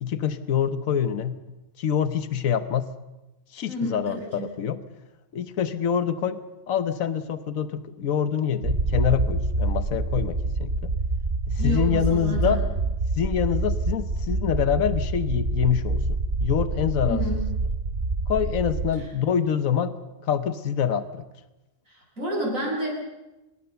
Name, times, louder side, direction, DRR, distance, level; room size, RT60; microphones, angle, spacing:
voice 1, 0.0-1.4 1.8-2.9 3.5-4.8 5.3-6.4 6.7-10.9 11.5-12.6 13.2-16.0 16.4-17.2 18.3-19.9 20.2-21.2, left 8 dB, 85° left, 12 dB, 1.4 m, -25 dB
voice 2, 3.7-4.5 11.6-12.6 17.0-17.4 19.0-19.1 21.9-22.9, equal, 85° right, -4 dB, 7.6 m, -30 dB
sound 1, 8.6-18.9, right 2 dB, 55° right, 2.2 m, -26 dB
26.0 x 21.0 x 6.9 m, 1.0 s
omnidirectional pair, 1.4 m